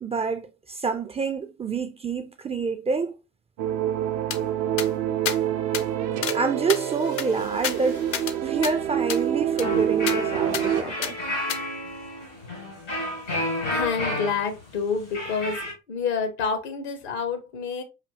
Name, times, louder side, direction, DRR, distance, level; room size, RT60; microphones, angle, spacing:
voice 1, 0.0-3.1 6.3-8.1 8.4-11.2, right 4 dB, 20° right, 0.4 m, -27 dB
sound 1, 3.6-10.8, right 10 dB, 65° right, 0.6 m, -26 dB
sound 2, 4.3-4.4 4.8-4.9 5.3-5.4 5.7-5.9 6.2-6.4 6.7-8.4 8.6-8.7 9.1-9.2 9.6-9.7 10.1-10.2 10.5-10.7 11.0-11.1 11.5-11.6, left 8 dB, 40° left, 0.6 m, -31 dB
sound 3, 9.6-15.7, left 1 dB, 85° left, 2.2 m, -31 dB
voice 2, 13.7-15.6 15.9-17.8, left 5 dB, 65° left, 0.9 m, -28 dB
5.0 x 2.7 x 2.6 m
figure-of-eight pair, 50°, 34 cm